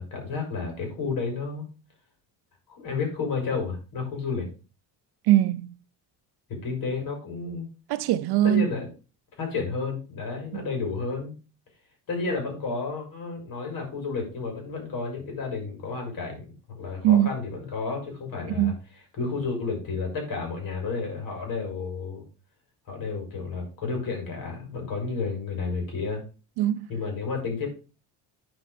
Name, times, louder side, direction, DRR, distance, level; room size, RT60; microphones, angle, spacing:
voice 1, 0.0-1.7 2.7-4.5 6.5-7.7 8.4-8.9 9.4-11.3 12.1-16.4 16.7-18.7 19.2-22.2 22.9-26.2 26.9-27.7, left 4 dB, 60° left, 5.0 m, -31 dB
voice 2, 5.3-5.7 7.9-8.7 10.5-10.7 17.0-17.3 18.6-18.7 26.6-26.9, right 12 dB, 85° right, 0.8 m, -21 dB
9.7 x 4.9 x 5.1 m
cardioid pair, 145°, 38 cm